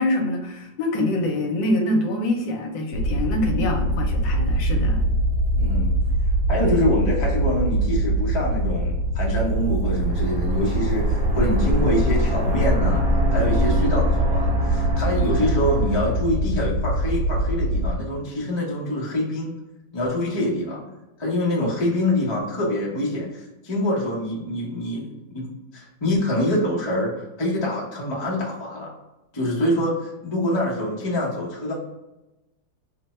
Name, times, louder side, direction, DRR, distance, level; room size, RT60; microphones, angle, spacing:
voice 1, 0.0-5.0, left 1 dB, 75° left, 2 dB, 1.3 m, -25 dB
sound 1, 2.9-17.9, right 1 dB, 70° right, 1.0 m, -23 dB
voice 2, 5.5-6.0 6.5-13.0 13.3-19.5 19.9-20.8 21.2-25.5 25.7-28.9 29.3-31.7, left 1 dB, 30° left, -4 dB, 0.5 m, -25 dB
sound 2, 9.8-16.3, equal, 40° right, 1.3 m, -25 dB
3.3 x 2.2 x 4.1 m, 1.0 s
omnidirectional pair, 2.0 m